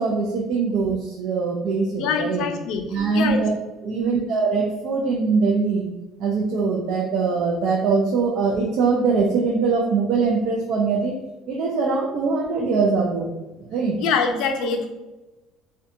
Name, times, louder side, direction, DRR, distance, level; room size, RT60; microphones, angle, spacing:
voice 1, 0.0-2.5 2.9-3.5 3.8-5.9 6.2-11.1 11.5-13.3 13.7-14.0, right 4 dB, 60° right, -1 dB, 0.4 m, -22 dB
voice 2, 1.9-3.4 3.9-4.2 14.0-14.9, left 5 dB, 65° left, 5 dB, 0.4 m, -25 dB
2.6 x 2.2 x 2.5 m, 1.1 s
cardioid pair, 155°, 0 cm